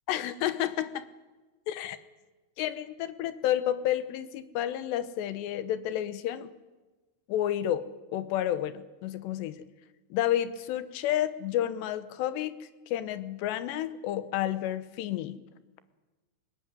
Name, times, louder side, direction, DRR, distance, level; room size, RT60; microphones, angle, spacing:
voice 1, 0.1-1.0 1.7-2.0 2.6-6.5 7.3-9.7 10.1-15.4, left 12 dB, 85° left, 13 dB, 3.2 m, -31 dB
20.5 x 19.0 x 9.7 m, 1.2 s
omnidirectional pair, 4.8 m